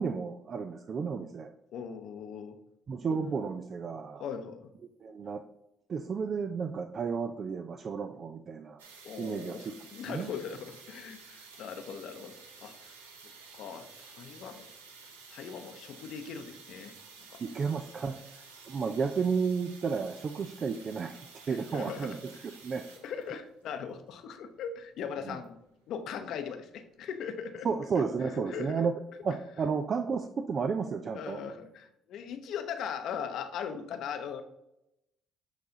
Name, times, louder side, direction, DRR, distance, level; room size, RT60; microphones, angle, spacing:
voice 1, 0.0-1.5 2.9-4.3 5.0-5.4 5.9-8.8 9.2-9.7 10.1-10.3 17.4-21.2 21.5-22.3 22.6-22.8 25.3-25.4 27.6-28.9 29.2-31.4, right 5 dB, 45° right, 8 dB, 0.4 m, -32 dB
voice 2, 1.7-2.6 4.2-4.7 9.0-12.9 13.5-14.7 15.3-16.9 17.3-17.7 21.5-22.2 23.0-25.6 25.9-27.7 28.0-28.8 31.1-34.4, left 7 dB, 65° left, 8 dB, 0.7 m, -40 dB
sound 1, 8.8-28.1, right 5 dB, 85° right, 0.7 m, -53 dB
8.1 x 3.4 x 3.8 m, 0.83 s
hypercardioid pair, 50°, 0 cm